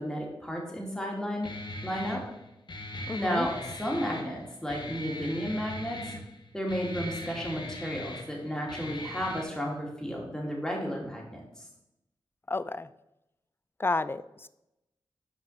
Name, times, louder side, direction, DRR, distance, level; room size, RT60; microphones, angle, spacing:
voice 1, 0.0-1.5 1.8-2.2 3.2-6.0 6.5-11.6, equal, 5° left, -2 dB, 2.5 m, -33 dB
Guitar, 1.4-9.4, left 1 dB, 55° left, 1.1 m, -40 dB
voice 2, 3.1-3.5 12.5-12.9 13.8-14.5, left 3 dB, 25° left, 15 dB, 0.4 m, -31 dB
6.1 x 4.9 x 5.5 m, 0.91 s
cardioid pair, 45°, 9 cm